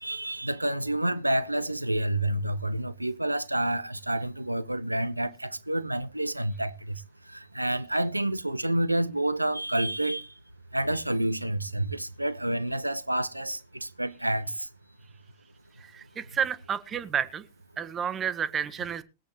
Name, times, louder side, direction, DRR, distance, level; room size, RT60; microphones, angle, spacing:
voice 1, 0.0-6.9 7.3-10.3 10.7-14.7, right 1 dB, 85° right, 0.6 m, -29 dB
voice 2, 15.8-17.4 17.8-19.0, right 7 dB, 25° right, 1.5 m, -31 dB
22.0 x 8.4 x 3.1 m
figure-of-eight pair, 90°, 0 cm